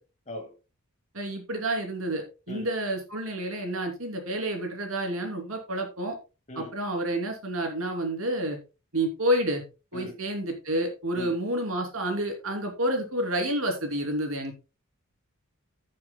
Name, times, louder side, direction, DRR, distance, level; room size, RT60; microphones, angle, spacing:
voice 1, 0.3-0.5 2.5-2.7 6.5-6.7 9.9-10.1 11.1-11.3, left 1 dB, 35° left, 2.0 m, -39 dB
voice 2, 1.1-6.2 6.5-8.6 8.9-9.6 9.9-14.6, right 1 dB, 70° right, 3.1 m, -29 dB
15.0 x 7.5 x 2.2 m
head